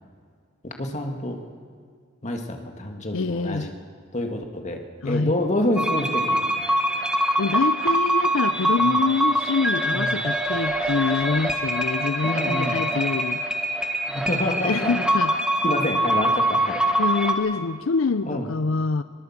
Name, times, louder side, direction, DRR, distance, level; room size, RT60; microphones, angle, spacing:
voice 1, 0.6-1.4 2.2-3.7 4.1-6.5 8.8-9.0 9.9-10.2 12.2-12.8 14.1-14.9 15.3-15.4 15.6-17.0 18.2-18.5, left 1 dB, 35° left, 3 dB, 2.1 m, -28 dB
voice 2, 3.1-3.7 5.0-5.4 7.4-13.4 14.6-15.3 17.0-19.0, left 4 dB, 80° left, 13 dB, 0.6 m, -25 dB
sound 1, 5.8-17.3, right 1 dB, 5° right, 1.7 m, -24 dB
22.5 x 21.5 x 7.4 m, 2.1 s
head